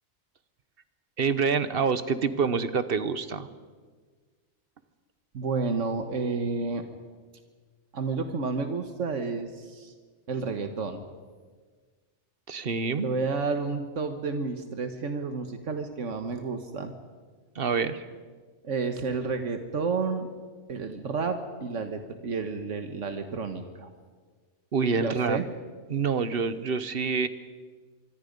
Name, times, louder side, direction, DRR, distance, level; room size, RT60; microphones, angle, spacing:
voice 1, 1.2-3.5 12.5-13.1 17.5-18.0 24.7-25.4 25.9-27.3, right 5 dB, 55° right, 13 dB, 1.2 m, -26 dB
voice 2, 5.3-6.8 7.9-9.9 10.3-11.0 13.0-17.0 18.6-20.3 20.7-23.9 25.0-25.4, right 4 dB, 85° right, 7 dB, 1.7 m, -31 dB
25.5 x 24.0 x 5.3 m, 1.5 s
omnidirectional pair, 1.2 m